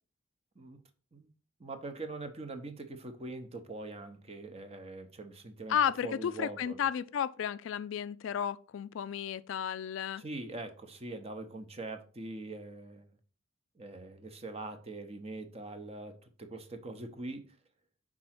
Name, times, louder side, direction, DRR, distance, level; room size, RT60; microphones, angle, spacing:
voice 1, 1.6-6.8 10.2-13.1 13.8-17.6, right 2 dB, 30° right, 0.8 m, -43 dB
voice 2, 5.7-10.2, left 8 dB, 70° left, 0.3 m, -33 dB
5.4 x 3.7 x 5.9 m
head